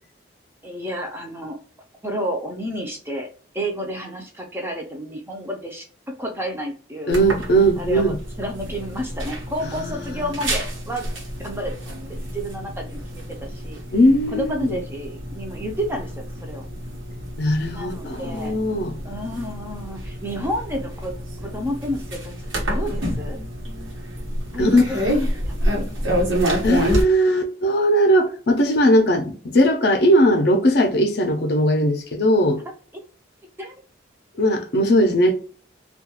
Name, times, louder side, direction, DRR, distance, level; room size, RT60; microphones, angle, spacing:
voice 1, 0.6-1.6 2.0-3.3 3.5-5.9 6.2-7.2 7.8-11.1 11.4-11.7 12.1-13.8 14.3-16.7 17.7-18.6 19.0-21.2 21.4-23.4 24.5-25.0 25.4-25.9 32.9-33.0 33.6-33.7, equal, 10° right, 0.4 m, -30 dB
voice 2, 7.1-8.2 9.6-10.3 13.9-14.8 17.4-19.0 24.6-24.8 25.1-25.3 26.6-32.6 34.4-35.3, equal, 55° left, 0.5 m, -19 dB
sound 1, 7.1-27.0, equal, 90° right, 1.0 m, -28 dB
2.3 x 2.3 x 2.8 m
head